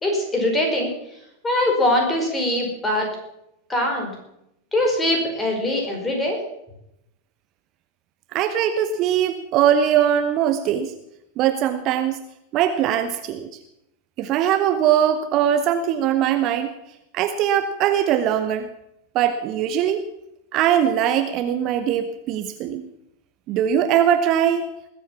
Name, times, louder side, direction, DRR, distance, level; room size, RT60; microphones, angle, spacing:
voice 1, 0.0-0.9 1.4-3.1 3.7-4.1 4.7-6.4, left 1 dB, 15° left, 1 dB, 4.9 m, -22 dB
voice 2, 8.3-10.9 11.4-12.2 12.5-13.5 14.2-16.7 17.1-18.7 19.1-20.0 20.5-22.9 23.5-24.7, right 10 dB, 35° right, 9 dB, 0.9 m, -21 dB
20.0 x 8.2 x 7.2 m, 0.82 s
figure-of-eight pair, 90°, 0 cm